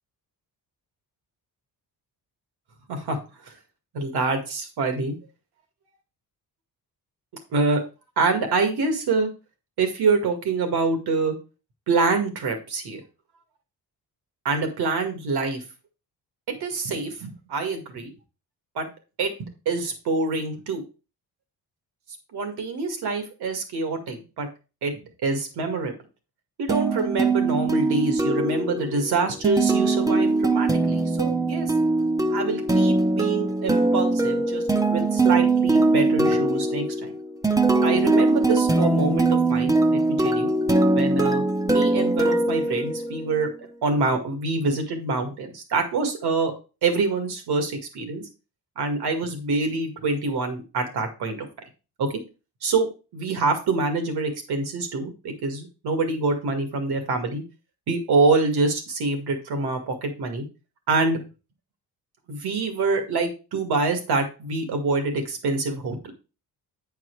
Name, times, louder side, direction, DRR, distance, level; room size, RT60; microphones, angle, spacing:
voice 1, 3.9-5.2 7.5-7.8 8.2-9.3 9.8-11.4 11.9-13.0 14.4-15.6 16.5-18.1 18.8-18.9 19.2-20.8 22.3-24.5 24.8-25.9 26.6-31.7 32.3-34.6 34.9-37.1 37.8-40.5 40.9-43.5 43.8-46.5 46.8-48.2 48.8-51.5 52.0-52.1 52.6-57.4 57.9-60.4 60.9-61.2 62.3-66.1, right 3 dB, 80° right, 6 dB, 2.2 m, -26 dB
sound 1, 26.7-43.4, right 2 dB, 10° right, 0.6 m, -22 dB
9.3 x 4.7 x 4.7 m, 0.31 s
cardioid pair, 145°, 39 cm